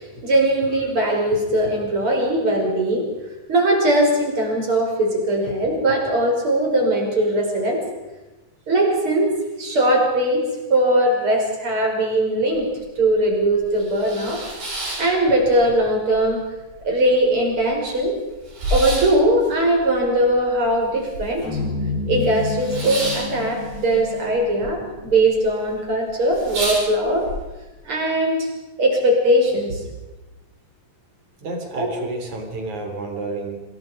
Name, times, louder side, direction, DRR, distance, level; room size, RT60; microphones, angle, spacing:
voice 1, 0.0-3.1 3.5-7.8 8.7-9.3 9.6-12.7 13.0-14.4 15.0-16.4 16.8-18.1 18.7-21.4 22.1-27.3 27.8-28.5 28.8-29.8 31.8-31.9, right 1 dB, 35° right, 0 dB, 6.5 m, -20 dB
Various Curtains opening and closing, 12.6-12.7 13.0-13.1 13.6-15.8 16.1-16.8 17.2-17.3 17.5-21.6 21.9-24.7 24.9-25.5 25.9-26.0 26.3-27.4, right 1 dB, 85° right, 9.3 m, -30 dB
sound 1, 21.4-25.7, left 3 dB, 70° left, 7.8 m, -30 dB
voice 2, 31.4-33.6, right 3 dB, 55° right, 4 dB, 4.9 m, -30 dB
27.5 x 21.0 x 5.3 m, 1.1 s
omnidirectional pair, 4.0 m